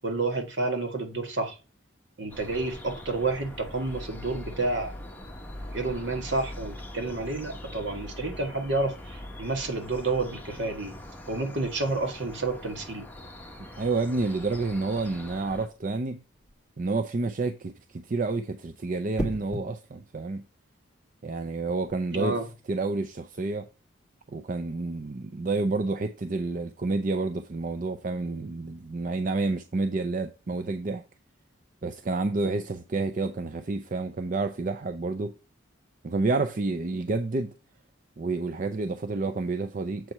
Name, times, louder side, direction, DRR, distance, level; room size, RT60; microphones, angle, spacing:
voice 1, 0.0-1.6 2.2-4.9 5.7-11.0 11.3-13.1 22.1-22.5, right 3 dB, 65° right, 1.7 m, -30 dB
sound 1, 2.3-15.7, left 1 dB, 10° left, 1.2 m, -42 dB
voice 2, 13.8-16.2 16.8-20.4 21.2-22.4 22.7-23.7 24.3-31.0 31.8-35.3 36.0-37.5 38.2-40.1, right 3 dB, 40° right, 0.5 m, -29 dB
sound 2, 16.3-16.7 19.2-19.7 21.7-22.0, equal, 5° right, 2.1 m, -34 dB
7.6 x 4.5 x 5.3 m
head